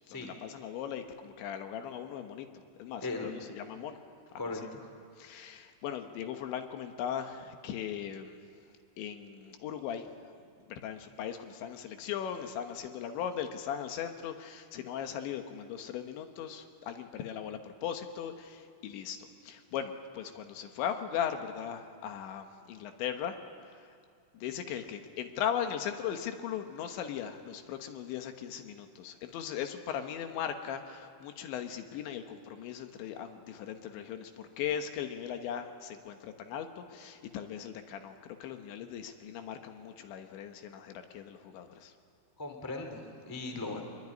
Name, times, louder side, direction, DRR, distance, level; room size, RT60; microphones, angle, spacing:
voice 1, 0.1-2.5 2.8-4.0 4.4-4.7 5.2-8.4 9.0-10.1 10.7-23.4 24.3-41.9, left 9 dB, 70° left, 6 dB, 3.4 m, -38 dB
voice 2, 4.3-4.8 42.4-43.8, left 3 dB, 10° left, 4 dB, 1.3 m, -38 dB
24.5 x 22.5 x 9.7 m, 2.2 s
omnidirectional pair, 5.7 m